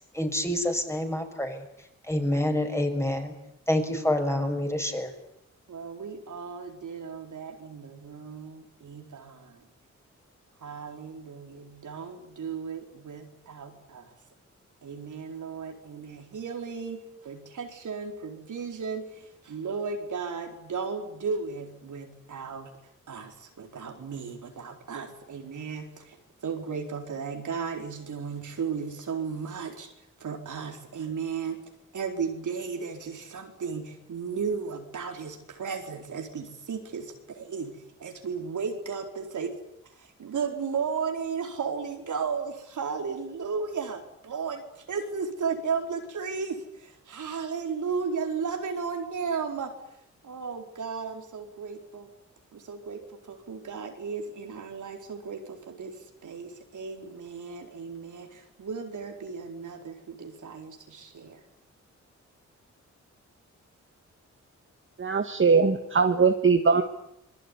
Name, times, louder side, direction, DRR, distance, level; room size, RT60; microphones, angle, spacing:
voice 1, 0.1-1.6 2.1-3.3 3.7-5.1, left 1 dB, 10° left, 5 dB, 6.4 m, -27 dB
voice 2, 5.7-9.7 10.6-14.1 14.8-22.7 23.1-26.2 26.4-29.9 30.2-31.6 31.9-39.6 39.9-49.7 50.2-52.1 52.5-61.4, right 5 dB, 80° right, 4 dB, 4.4 m, -35 dB
voice 3, 65.0-66.8, right 5 dB, 40° right, 6 dB, 1.9 m, -21 dB
27.0 x 21.5 x 10.0 m, 0.79 s
cardioid pair, 80°, 30 cm